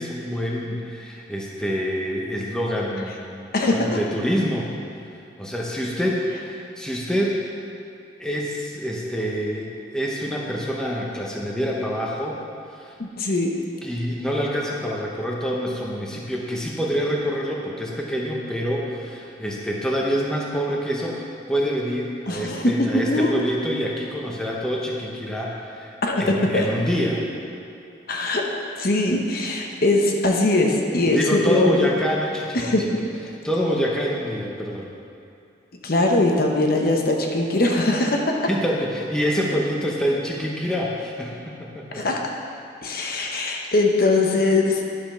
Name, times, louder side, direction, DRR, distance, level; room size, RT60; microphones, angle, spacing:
voice 1, 0.0-4.7 5.4-7.4 8.2-12.4 12.7-13.0 13.8-27.3 31.1-32.9 33.3-34.9 38.5-42.1, equal, 5° left, -3 dB, 0.8 m, -26 dB
voice 2, 3.5-4.0 13.0-13.6 22.3-23.3 26.0-26.7 28.1-28.4 28.8-31.9 32.5-32.9 35.8-38.5 41.9-42.2 42.8-44.9, left 2 dB, 50° left, 1 dB, 0.9 m, -21 dB
11.5 x 5.2 x 5.8 m, 2.5 s
head